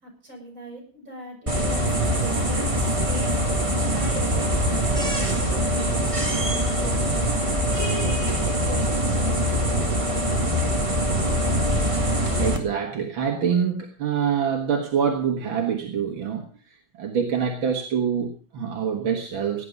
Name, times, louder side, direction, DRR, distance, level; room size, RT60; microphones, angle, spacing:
voice 1, 0.0-2.7 3.1-3.4 3.9-11.0, right 1 dB, 40° right, 0 dB, 6.6 m, -40 dB
sound 1, 1.5-12.6, equal, 15° right, 2.1 m, -23 dB
voice 2, 12.3-19.7, right 7 dB, 80° right, 3 dB, 2.4 m, -25 dB
18.0 x 10.0 x 5.3 m, 0.39 s
omnidirectional pair, 2.2 m